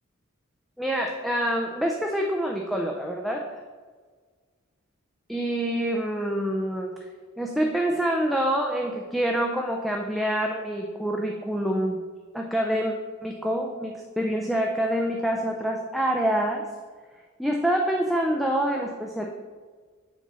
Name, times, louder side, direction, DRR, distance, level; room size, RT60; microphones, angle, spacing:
voice 1, 0.8-3.5 5.3-6.9 7.4-12.0 12.3-12.9 13.2-16.6 17.4-19.3, right 1 dB, ahead, 0 dB, 0.4 m, -26 dB
7.3 x 4.3 x 5.5 m, 1.5 s
head